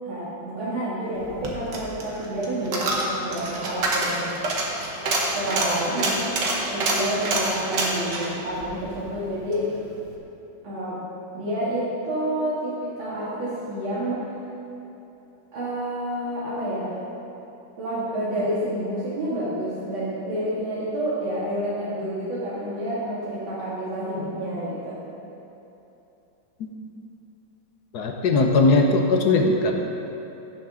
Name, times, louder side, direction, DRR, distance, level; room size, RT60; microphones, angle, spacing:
voice 1, 0.0-4.3 5.3-6.4 6.7-9.7 10.6-11.0 11.3-14.2 15.5-17.0 17.8-25.0, right 1 dB, 85° right, -10 dB, 2.6 m, -29 dB
Coin (dropping), 1.2-9.6 10.0-10.1, right 2 dB, 65° right, 1.8 m, -27 dB
voice 2, 27.9-29.7, left 3 dB, 60° left, 2 dB, 1.3 m, -19 dB
16.5 x 6.4 x 3.7 m, 3.0 s
omnidirectional pair, 2.1 m